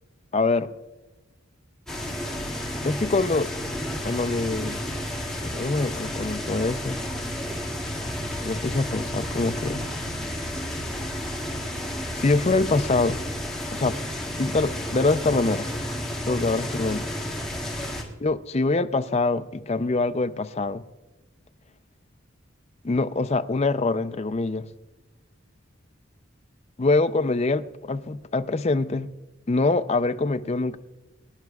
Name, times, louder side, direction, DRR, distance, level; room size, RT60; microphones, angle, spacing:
voice 1, 0.3-0.7 2.8-3.5 4.0-4.8 5.4-7.0 8.4-9.9 12.1-13.2 13.7-14.0 14.4-15.7 16.2-17.0 18.2-20.8 22.8-24.7 26.8-29.1 29.5-30.8, left 3 dB, 30° left, 0.4 m, -24 dB
sound 1, 1.9-18.0, equal, 5° left, 1.9 m, -31 dB
24.5 x 10.5 x 2.3 m
head